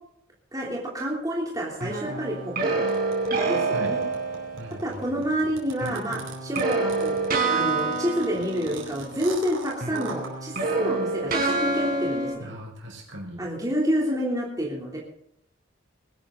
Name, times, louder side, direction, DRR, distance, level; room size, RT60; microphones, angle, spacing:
voice 1, 0.5-2.8 3.4-4.0 4.8-7.2 7.5-12.5 13.4-15.0, equal, 20° right, -3 dB, 3.1 m, -28 dB
sound 1, 1.8-4.9 5.8-9.5 9.7-12.3, right 3 dB, 50° right, 4.6 m, -27 dB
sound 2, 2.9-10.3, right 4 dB, 90° right, 4.3 m, -41 dB
voice 2, 4.6-5.0 12.4-13.4, equal, 65° right, 1 dB, 5.7 m, -38 dB
21.0 x 12.0 x 3.9 m, 0.75 s
head